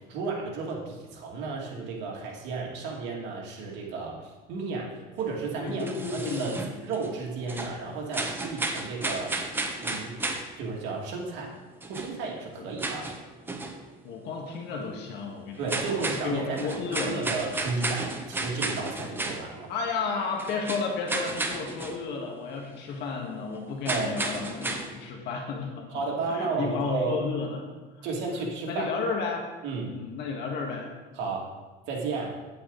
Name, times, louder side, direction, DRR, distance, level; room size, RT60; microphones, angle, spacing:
voice 1, 0.1-5.9 6.1-9.3 9.8-10.2 10.6-11.5 11.9-13.1 15.6-19.7 23.8-24.2 25.9-27.3 28.0-28.9 29.6-30.0 31.1-31.5 31.9-32.4, right 4 dB, 70° right, -2 dB, 2.4 m, -33 dB
sound 1, 5.2-7.2 7.5-10.6 11.5-11.6 11.8-13.8 14.1-14.3 14.5-14.6 15.0-15.1 15.5-19.7 20.0-22.0 22.3-22.4 22.7-22.8 23.8-25.0, right 2 dB, 10° right, 0.9 m, -33 dB
voice 2, 5.6-6.7 14.0-17.3 19.7-26.0 26.3-27.6 28.0-28.1 28.7-29.4 29.9-30.9, left 4 dB, 60° left, 1 dB, 1.7 m, -32 dB
9.5 x 8.7 x 4.0 m, 1.2 s
cardioid pair, 140°, 19 cm